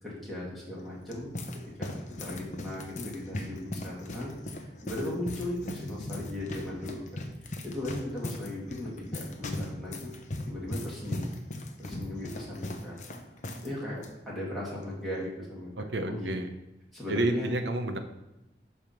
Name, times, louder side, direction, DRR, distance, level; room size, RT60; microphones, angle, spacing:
voice 1, 0.0-1.3 1.8-10.1 10.5-11.3 11.8-12.9 13.6-14.0 14.2-15.7 16.1-16.3 16.9-17.5, left 1 dB, ahead, -7 dB, 2.4 m, -37 dB
sound 1, 0.8-13.7 13.9-14.1 14.8-15.1, left 1 dB, 40° left, 0.8 m, -39 dB
voice 2, 15.8-16.5 17.1-18.0, right 2 dB, 85° right, 6 dB, 0.8 m, -30 dB
10.0 x 3.6 x 5.9 m, 0.98 s
head